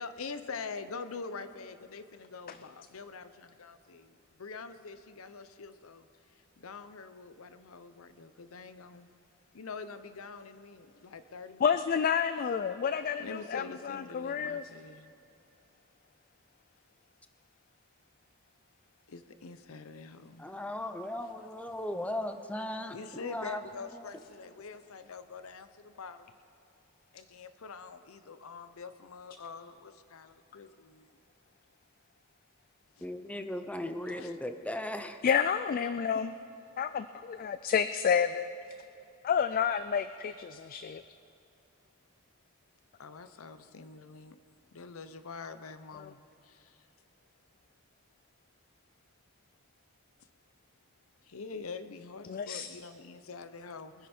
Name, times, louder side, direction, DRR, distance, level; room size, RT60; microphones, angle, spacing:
voice 1, 0.0-6.1 6.6-9.1 9.5-11.8 13.2-15.1 19.1-20.5 22.9-26.3 27.1-31.1 33.0-33.1 34.0-34.4 40.9-41.0 43.0-44.4 44.7-46.8 51.2-54.1, left 4 dB, 80° left, 11 dB, 0.7 m, -45 dB
voice 2, 11.6-14.6 35.2-36.3 36.8-38.5 39.2-41.0 46.0-46.1 52.2-52.7, left 7 dB, 45° left, 12 dB, 0.3 m, -30 dB
voice 3, 20.4-23.0 23.2-23.6 23.9-24.1 33.0-35.2, left 1 dB, 5° left, 7 dB, 0.6 m, -37 dB
22.5 x 10.0 x 4.4 m, 2.8 s
head